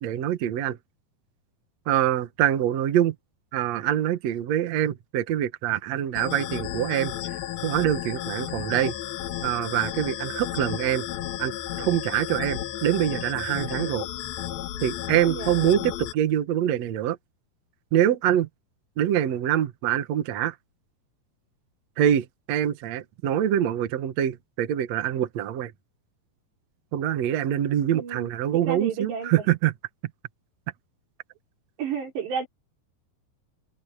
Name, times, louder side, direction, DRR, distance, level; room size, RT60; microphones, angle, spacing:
voice 1, 0.0-0.8 1.9-3.2 3.5-7.2 7.6-8.9 9.4-11.1 11.4-14.1 14.8-17.2 17.9-18.5 19.0-20.6 22.0-25.7 26.9-29.7, right 11 dB, 60° right, 1.8 m, -25 dB
sound 1, 6.1-16.1, left 12 dB, 70° left, 2.9 m, -33 dB
voice 2, 27.9-28.3 28.7-29.5 31.8-32.5, right 6 dB, 85° right, 7.1 m, -31 dB
omnidirectional pair, 4.8 m